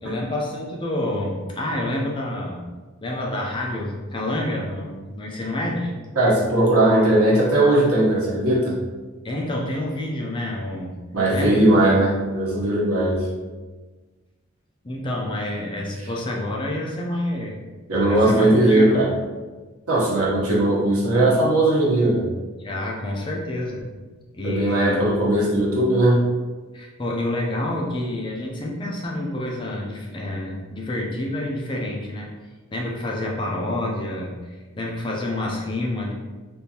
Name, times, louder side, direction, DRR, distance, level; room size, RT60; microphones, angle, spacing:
voice 1, 0.0-2.6 3.0-5.9 9.2-11.0 11.3-11.6 14.8-17.6 18.0-19.0 22.6-23.8 24.3-25.1 26.7-32.3 32.7-36.1, left 1 dB, 20° left, -2 dB, 0.4 m, -28 dB
voice 2, 6.2-8.8 11.1-13.3 17.9-19.1 19.9-22.3 24.4-26.3, right 1 dB, 90° right, -5 dB, 1.0 m, -18 dB
3.4 x 2.6 x 2.8 m, 1.3 s
head